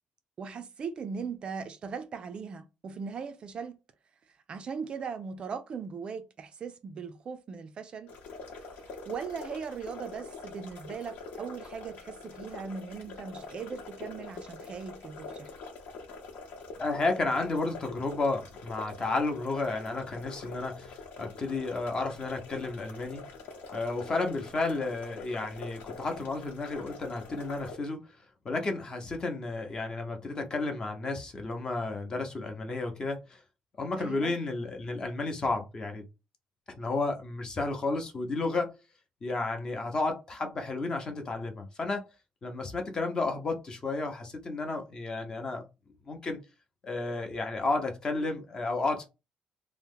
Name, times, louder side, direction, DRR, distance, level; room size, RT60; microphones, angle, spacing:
voice 1, 0.4-3.8 4.5-8.1 8.6-15.5 34.0-34.4, right 5 dB, 40° right, 0.3 m, -39 dB
sound 1, 8.1-27.7, left 4 dB, 75° left, 1.0 m, -45 dB
voice 2, 16.8-23.3 23.7-28.0 28.4-33.4 33.8-36.0 36.8-38.7 39.2-42.0 42.4-45.6 46.1-46.4 46.8-49.0, left 3 dB, 30° left, 0.7 m, -32 dB
2.8 x 2.1 x 3.5 m
cardioid pair, 150°, 3 cm